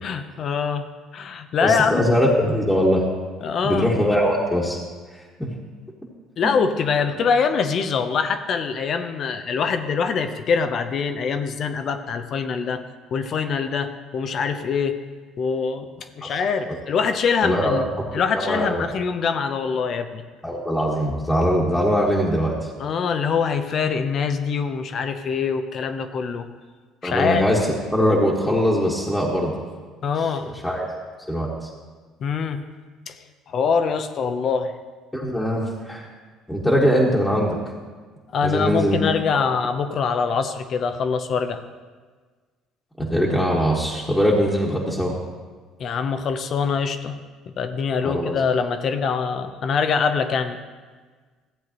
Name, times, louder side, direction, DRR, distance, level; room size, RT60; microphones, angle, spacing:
voice 1, 0.0-0.9 1.1-2.1 3.4-3.9 6.4-12.8 13.1-15.0 15.4-17.9 18.1-20.2 22.8-26.5 27.0-27.4 30.0-30.5 32.2-32.6 33.1-33.2 33.5-34.7 38.3-41.6 45.8-47.2 47.5-50.6, left 6 dB, 50° left, 8 dB, 0.7 m, -24 dB
voice 2, 1.6-3.0 3.6-4.8 5.4-5.5 6.4-6.6 16.2-16.3 17.4-17.8 18.3-18.8 20.4-22.7 27.0-27.6 27.9-29.6 30.6-30.9 31.3-31.7 35.1-36.1 36.5-37.6 38.4-39.0 39.3-39.4 43.0-45.1 48.0-48.3, equal, 10° left, -5 dB, 1.5 m, -21 dB
15.0 x 8.0 x 3.0 m, 1.4 s
supercardioid pair, 85°, 0 cm